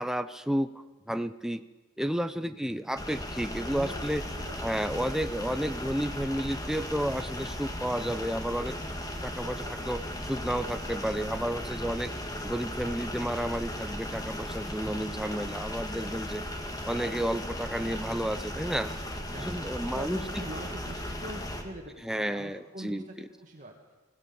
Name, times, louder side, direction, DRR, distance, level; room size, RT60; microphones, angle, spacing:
voice 1, 0.0-1.6 2.0-4.2 4.6-8.8 9.2-12.1 12.4-16.4 16.8-18.9 19.4-20.4 22.0-23.3, equal, ahead, 10 dB, 0.6 m, -32 dB
sound 1, 3.0-21.6, left 1 dB, 15° left, 2.1 m, -36 dB
voice 2, 4.4-5.8 9.2-10.0 16.3-16.5 19.3-19.5 19.9-23.7, right 1 dB, 35° right, 0 dB, 2.1 m, -45 dB
25.0 x 16.5 x 7.1 m, 1.2 s
head